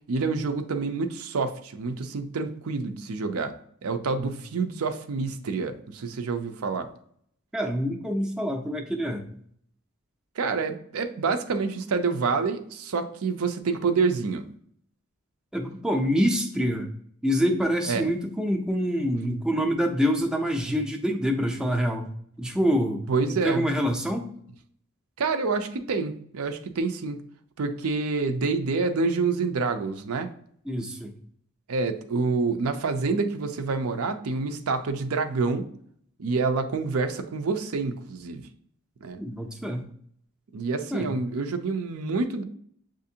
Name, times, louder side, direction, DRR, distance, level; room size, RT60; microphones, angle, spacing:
voice 1, 0.1-3.5 3.8-6.9 10.4-14.5 17.9-18.1 23.1-23.7 25.2-27.2 27.6-30.3 31.7-35.7 36.2-38.4 39.0-39.2 40.5-42.4, right 4 dB, 70° right, 7 dB, 0.5 m, -27 dB
voice 2, 7.5-9.3 15.5-16.9 17.2-22.1 22.4-23.0 23.3-24.3 30.7-31.1 39.2-39.8 40.9-41.2, equal, 5° right, 2 dB, 0.4 m, -26 dB
7.1 x 2.5 x 2.7 m, 0.65 s
head